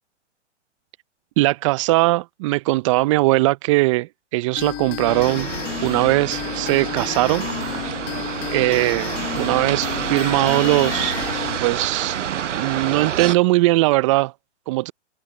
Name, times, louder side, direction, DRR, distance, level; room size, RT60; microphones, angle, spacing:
voice 1, 1.4-5.5 5.8-7.5 8.5-11.2 11.6-14.3 14.7-14.9, right 20 dB, 25° right, 0.6 m, -20 dB
sound 1, 4.6-11.6, left 21 dB, 25° left, 1.1 m, -31 dB
sound 2, 5.1-13.4, right 8 dB, 85° right, 0.8 m, -28 dB
hypercardioid pair, 130°, 36 cm